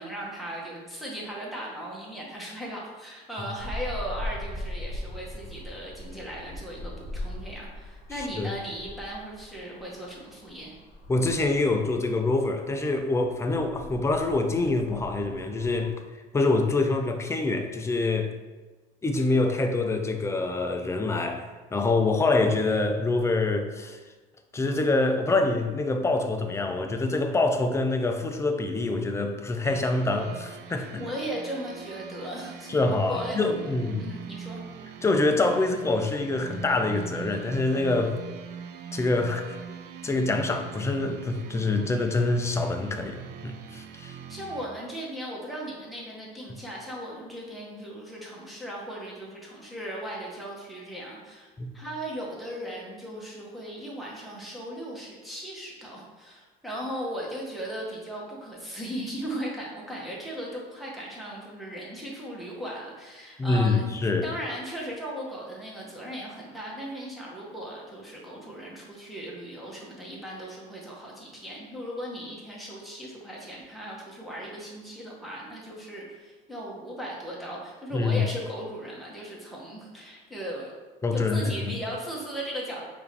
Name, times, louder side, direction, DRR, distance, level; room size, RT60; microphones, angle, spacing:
voice 1, 0.0-10.7 31.0-33.4 33.6-33.7 34.0-34.6 44.3-80.7 81.1-82.8, equal, ahead, -4 dB, 1.0 m, -37 dB
sound 1, 3.6-15.9, left 1 dB, 50° left, 0.9 m, -40 dB
voice 2, 11.1-15.9 16.3-18.3 19.0-24.0 24.5-31.0 32.7-34.1 35.0-38.2 38.9-39.6 40.0-44.2 51.6-51.7 63.4-64.3 77.9-78.2 81.0-81.7, left 2 dB, 15° left, 5 dB, 0.3 m, -25 dB
sound 2, 29.6-44.7, right 7 dB, 65° right, 0.4 m, -42 dB
4.7 x 2.5 x 3.3 m, 1.3 s
cardioid pair, 125°, 19 cm